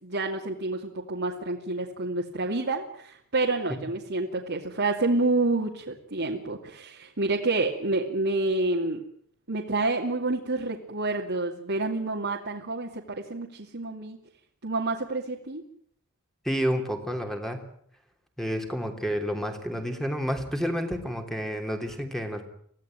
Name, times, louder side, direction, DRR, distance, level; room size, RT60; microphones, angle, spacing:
voice 1, 0.0-9.0 9.5-14.2 14.6-15.6, right 2 dB, 55° right, -1 dB, 2.6 m, -28 dB
voice 2, 16.4-17.7 18.4-22.5, equal, ahead, 5 dB, 3.2 m, -30 dB
25.0 x 16.5 x 9.1 m, 0.66 s
head